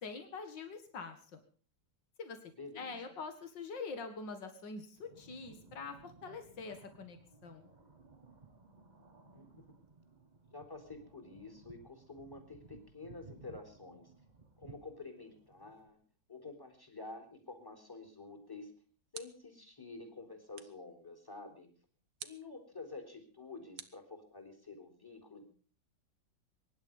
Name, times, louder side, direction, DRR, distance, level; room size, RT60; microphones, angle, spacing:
voice 1, 0.0-1.4 2.2-2.4 2.7-7.2 7.4-7.7, left 4 dB, 85° left, 7 dB, 2.6 m, -44 dB
voice 2, 2.5-3.1 9.3-9.6 10.5-14.1 14.6-16.0 16.3-18.7 19.1-21.7 22.2-25.4, left 3 dB, 10° left, 5 dB, 3.8 m, -49 dB
sound 1, 4.9-15.9, right 4 dB, 25° right, 1.5 m, -59 dB
sound 2, 18.4-19.6 20.5-20.9 22.2-22.6 23.8-24.7, right 8 dB, 75° right, 1.9 m, -51 dB
23.5 x 11.5 x 5.3 m, 0.42 s
omnidirectional pair, 1.9 m